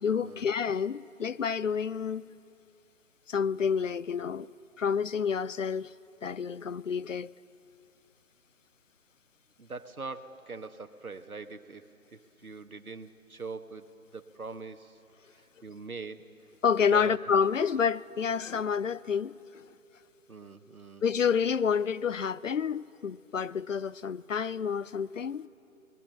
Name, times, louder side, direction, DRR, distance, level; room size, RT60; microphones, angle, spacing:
voice 1, 0.0-2.3 3.3-4.5 4.8-5.9 6.2-7.3 16.6-19.3 21.0-25.5, left 6 dB, 65° left, 0.5 m, -29 dB
voice 2, 9.6-15.0 15.3-16.2 16.9-17.3 20.3-21.4, right 4 dB, 80° right, 1.3 m, -43 dB
29.0 x 20.5 x 7.0 m
figure-of-eight pair, 145°, 42 cm